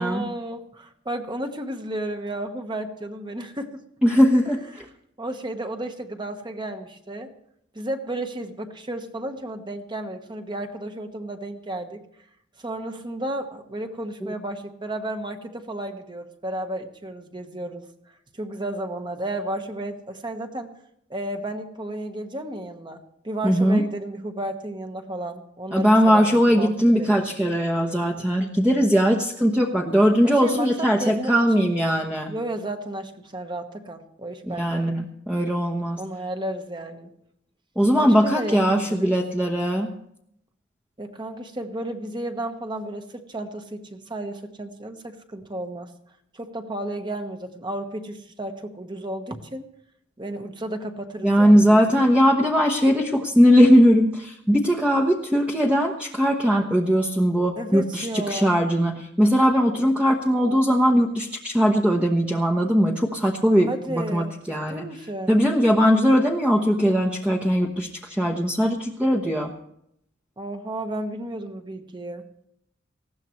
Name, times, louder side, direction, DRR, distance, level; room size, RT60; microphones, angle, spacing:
voice 1, 0.0-3.8 4.5-4.8 5.2-7.3 7.7-12.0 12.6-17.9 18.3-20.7 21.1-27.3 30.2-31.7 32.3-34.9 36.0-37.1 38.0-39.1 41.0-45.9 46.3-49.7 50.2-52.1 57.6-58.5 63.7-64.3 64.7-65.4 70.4-72.2, right 1 dB, 25° right, 6 dB, 1.3 m, -33 dB
voice 2, 4.0-4.6 14.2-14.3 23.4-23.8 25.7-32.3 34.5-36.0 37.8-39.9 51.2-64.8 65.3-69.5, equal, 5° right, 0 dB, 1.0 m, -20 dB
19.5 x 15.5 x 3.2 m, 0.73 s
head